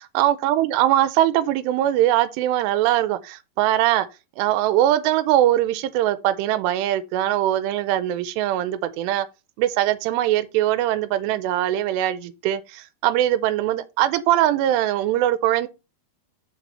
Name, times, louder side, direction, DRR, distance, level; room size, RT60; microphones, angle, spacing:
voice 1, 0.0-4.1 4.4-9.3 9.6-15.7, right 13 dB, 85° right, 2.8 m, -21 dB
6.7 x 5.8 x 4.2 m
omnidirectional pair, 4.9 m